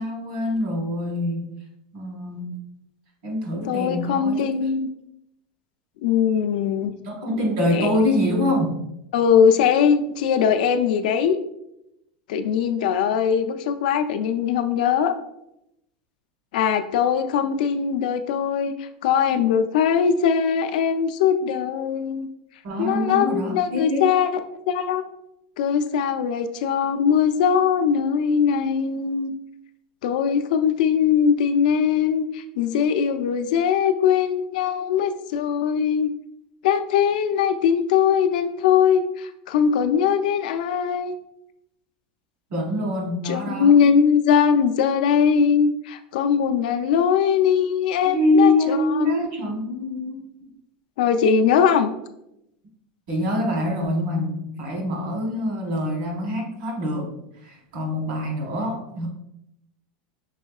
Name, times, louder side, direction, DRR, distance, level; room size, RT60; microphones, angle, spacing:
voice 1, 0.0-1.5 1.9-2.6 3.2-4.6 7.0-8.8 22.6-24.1 42.5-43.8 48.0-50.5 53.1-59.1, left 1 dB, 60° right, 1 dB, 1.2 m, -25 dB
voice 2, 3.7-4.9 6.0-6.9 7.7-7.9 9.1-11.4 12.3-15.2 16.5-22.3 22.8-24.3 24.7-25.0 25.6-29.3 30.0-36.1 36.6-41.2 43.2-49.2 51.0-51.9, left 7 dB, 70° left, 9 dB, 0.4 m, -21 dB
5.4 x 3.5 x 2.3 m, 0.82 s
supercardioid pair, 165°, 5 cm